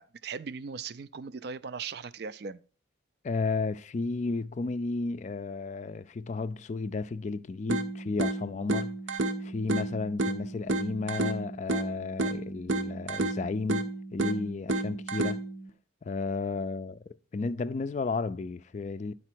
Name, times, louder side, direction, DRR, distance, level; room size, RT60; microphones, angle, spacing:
voice 1, 0.0-2.6, right 5 dB, 60° right, 0.4 m, -39 dB
voice 2, 3.2-9.0 9.4-15.4 16.0-19.1, left 3 dB, 40° left, 0.3 m, -33 dB
sound 1, 7.7-15.7, right 2 dB, 80° right, 0.8 m, -32 dB
9.9 x 4.2 x 4.5 m
head